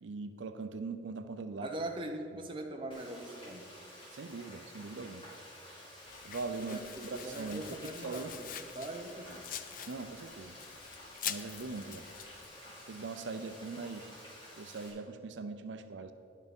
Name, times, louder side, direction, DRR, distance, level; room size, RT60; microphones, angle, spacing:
voice 1, 0.0-1.7 4.1-5.2 6.2-8.3 9.9-10.5 11.2-12.1 12.9-14.1 14.6-16.1, right 4 dB, 85° right, 9 dB, 0.5 m, -41 dB
voice 2, 1.6-3.7 6.5-9.5, right 1 dB, 25° right, 3 dB, 0.8 m, -42 dB
Frying (food), 2.9-14.9, left 1 dB, 30° left, 2.4 m, -51 dB
Domestic sounds home sounds, 6.1-12.5, left 10 dB, 45° left, 0.4 m, -45 dB
10.5 x 6.5 x 5.3 m, 2.5 s
head